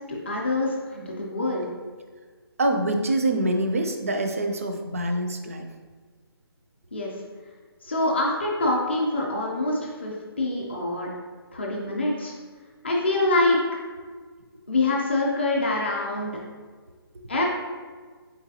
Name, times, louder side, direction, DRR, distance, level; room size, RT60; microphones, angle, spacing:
voice 1, 0.1-1.7 6.9-7.1 7.8-11.1 11.5-12.3 12.8-13.6 14.7-16.3 17.3-17.4, left 2 dB, 25° left, -3 dB, 0.5 m, -25 dB
voice 2, 2.6-5.7, right 1 dB, 35° right, 5 dB, 0.4 m, -25 dB
4.5 x 3.8 x 2.7 m, 1.5 s
hypercardioid pair, 175°, 13 cm